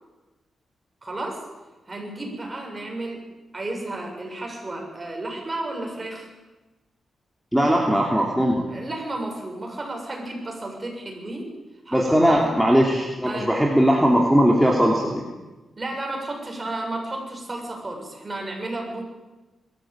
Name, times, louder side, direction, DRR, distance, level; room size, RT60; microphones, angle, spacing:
voice 1, 1.0-1.4 1.9-3.2 3.5-6.3 8.7-11.5 11.9-12.6 13.3-13.5 15.8-19.0, right 2 dB, 25° right, 1 dB, 7.2 m, -32 dB
voice 2, 7.5-8.7 11.9-15.2, equal, ahead, -2 dB, 3.1 m, -19 dB
21.5 x 14.0 x 8.9 m, 1.2 s
cardioid pair, 90°, 0 cm